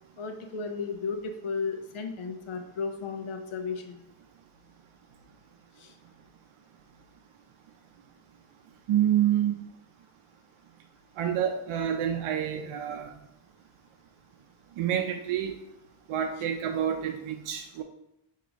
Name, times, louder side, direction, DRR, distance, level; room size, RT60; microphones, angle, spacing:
voice 1, 0.2-4.0 5.8-5.9, left 5 dB, 75° left, 5 dB, 0.9 m, -34 dB
voice 2, 8.9-9.6 11.2-13.1 14.8-15.5 16.1-17.8, right 10 dB, 80° right, 4 dB, 0.6 m, -28 dB
4.9 x 2.8 x 3.9 m, 0.85 s
cardioid pair, 90°, 50 cm